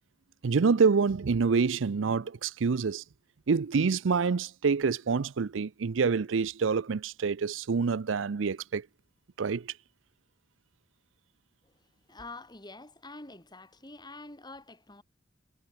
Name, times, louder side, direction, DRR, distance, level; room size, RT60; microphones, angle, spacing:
voice 1, 0.4-3.0 3.5-8.9 9.4-9.7, right 5 dB, 90° right, 0.5 m, -27 dB
voice 2, 12.1-15.0, left 2 dB, 20° left, 7.8 m, -46 dB
head